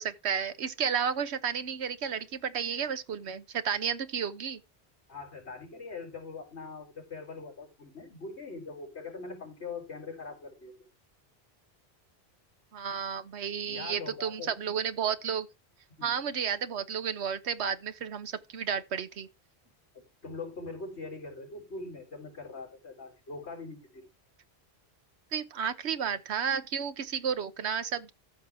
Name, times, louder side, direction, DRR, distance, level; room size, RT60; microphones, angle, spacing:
voice 1, 0.0-4.6 12.7-15.5 16.0-19.3 25.3-28.1, right 7 dB, 85° right, 1.2 m, -32 dB
voice 2, 5.1-10.7 13.7-14.5 16.0-16.2 19.9-24.0, left 3 dB, 90° left, 4.2 m, -42 dB
13.5 x 7.6 x 3.5 m
omnidirectional pair, 1.1 m